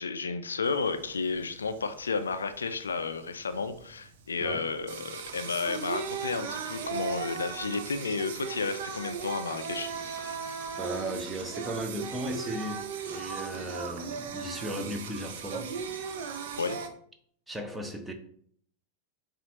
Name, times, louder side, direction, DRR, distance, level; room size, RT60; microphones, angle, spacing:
voice 1, 0.0-10.5 16.6-16.8, left 4 dB, 70° left, 0.3 m, -32 dB
Singing, 0.6-16.9, right 6 dB, 55° right, 0.6 m, -38 dB
voice 2, 4.4-4.7 10.8-15.7 17.5-18.1, right 1 dB, 5° right, 0.7 m, -36 dB
7.0 x 2.4 x 2.9 m
figure-of-eight pair, 90°, 0 cm